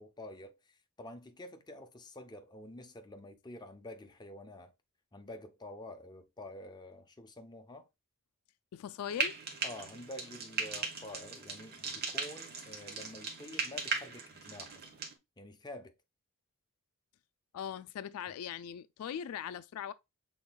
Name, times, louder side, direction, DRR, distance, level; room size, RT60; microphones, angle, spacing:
voice 1, 0.0-4.7 5.1-7.9 9.6-14.7 15.4-15.9, left 1 dB, 20° left, 0.6 m, -48 dB
voice 2, 8.7-9.4 17.5-19.9, left 9 dB, 75° left, 0.3 m, -40 dB
Frying (food), 9.1-15.1, right 4 dB, 45° right, 1.2 m, -38 dB
6.2 x 3.5 x 2.2 m
head